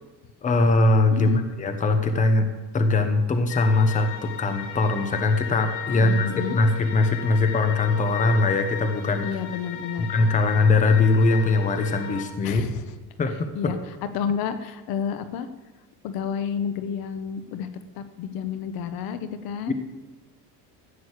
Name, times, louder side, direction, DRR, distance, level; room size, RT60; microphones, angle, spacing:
voice 1, 0.4-1.3 1.6-2.5 2.7-9.3 10.0-12.6 13.2-13.7 19.7-19.8, left 3 dB, 20° left, 7 dB, 1.0 m, -21 dB
voice 2, 1.1-1.4 5.9-6.6 9.2-10.1 12.4-13.0 13.5-15.5 16.0-17.7 17.9-19.7, left 7 dB, 65° left, 10 dB, 1.0 m, -30 dB
sound 1, 3.5-12.3, left 9 dB, 85° left, 1.9 m, -36 dB
14.5 x 6.2 x 8.2 m, 1.3 s
cardioid pair, 165°, 39 cm